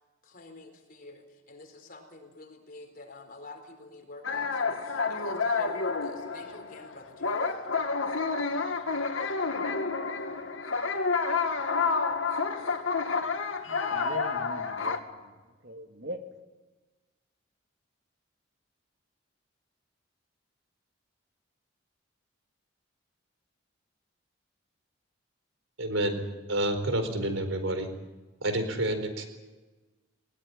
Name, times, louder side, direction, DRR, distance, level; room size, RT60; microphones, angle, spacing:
voice 1, 0.2-7.6, left 2 dB, 45° left, 5 dB, 4.3 m, -48 dB
sound 1, 4.2-15.0, left 4 dB, 85° left, 2.0 m, -29 dB
voice 2, 13.7-15.3 15.6-16.2, right 1 dB, 55° right, 5 dB, 2.3 m, -42 dB
voice 3, 25.8-26.2 26.5-27.9 28.4-29.2, right 1 dB, 90° right, 8 dB, 4.3 m, -29 dB
20.0 x 20.0 x 9.9 m, 1.2 s
head